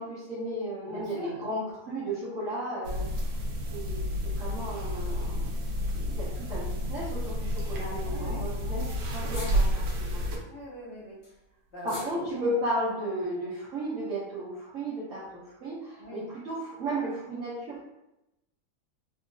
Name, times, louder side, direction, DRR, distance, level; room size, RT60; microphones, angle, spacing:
voice 1, 0.0-3.1 3.7-5.5 5.9-10.2 11.8-17.9, right 1 dB, 55° right, -9 dB, 1.2 m, -34 dB
voice 2, 0.8-1.4 8.0-8.6 10.5-11.2 11.7-12.3 16.0-16.3, equal, 45° left, -6 dB, 1.1 m, -42 dB
sound 1, 2.8-10.4, equal, 80° right, 1.3 m, -30 dB
sound 2, 7.2-7.6 7.9-8.0 8.2-8.3 8.5-8.6 9.1-10.0 10.6-12.8, left 1 dB, 70° left, 1.7 m, -47 dB
3.8 x 2.5 x 2.5 m, 0.89 s
omnidirectional pair, 1.8 m